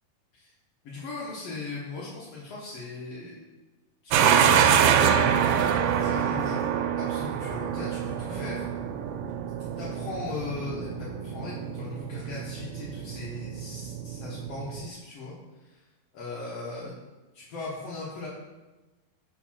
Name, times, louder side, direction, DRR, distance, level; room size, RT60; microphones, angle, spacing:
voice 1, 0.8-3.4 4.0-6.7 7.0-8.6 9.8-15.8 16.1-16.9 17.3-18.3, left 3 dB, 75° left, -7 dB, 1.4 m, -38 dB
sound 1, 4.1-14.9, right 8 dB, 85° right, 2.4 m, -26 dB
5.4 x 4.2 x 5.8 m, 1.2 s
omnidirectional pair, 4.3 m